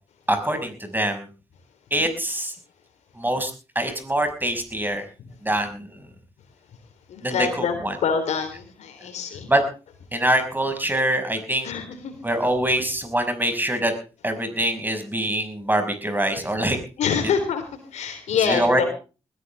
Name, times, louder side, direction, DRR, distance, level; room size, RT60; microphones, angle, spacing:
voice 1, 0.3-1.3 1.9-2.5 3.2-3.5 3.8-5.0 5.4-5.9 7.2-8.0 9.5-9.6 10.1-11.7 12.2-13.9 14.2-16.8 18.5-18.9, right 1 dB, 15° right, 8 dB, 5.8 m, -24 dB
voice 2, 7.1-9.5 11.6-12.2 17.0-18.9, left 6 dB, 75° left, 7 dB, 3.6 m, -26 dB
20.5 x 15.0 x 3.5 m, 0.34 s
hypercardioid pair, 45°, 12 cm